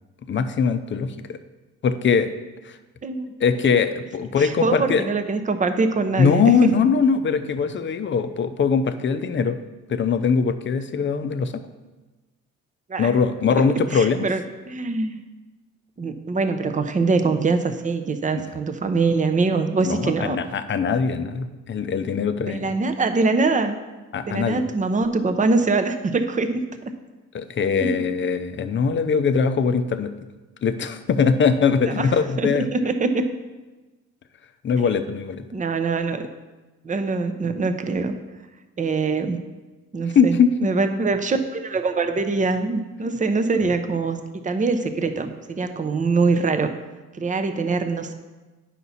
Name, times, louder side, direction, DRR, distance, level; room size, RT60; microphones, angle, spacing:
voice 1, 0.3-1.4 1.8-2.3 2.6-2.8 3.4-5.1 6.2-9.6 9.9-11.6 13.0-14.3 19.9-22.8 24.1-24.6 27.3-30.1 30.6-32.6 34.6-35.5 40.1-40.7, left 6 dB, 40° left, 9 dB, 0.6 m, -21 dB
voice 2, 4.4-6.7 12.9-13.2 13.5-15.2 16.0-20.4 22.4-23.8 24.3-26.6 27.8-28.0 31.8-32.1 32.4-33.3 34.8-34.9 35.5-36.3 36.8-38.1 38.8-39.4 39.9-46.7 47.1-48.1, right 3 dB, 25° right, 8 dB, 0.7 m, -23 dB
9.2 x 5.9 x 4.2 m, 1.2 s
cardioid pair, 90°, 30 cm